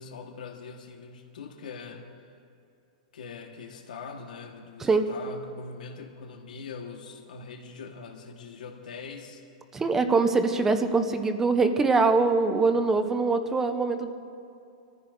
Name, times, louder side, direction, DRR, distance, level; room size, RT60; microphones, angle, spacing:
voice 1, 0.0-2.2 3.1-9.4, left 5 dB, 90° left, 3 dB, 1.4 m, -42 dB
voice 2, 9.7-14.1, right 4 dB, 10° right, 7 dB, 0.6 m, -23 dB
26.0 x 14.5 x 2.6 m, 2.6 s
supercardioid pair, 165°, 4 cm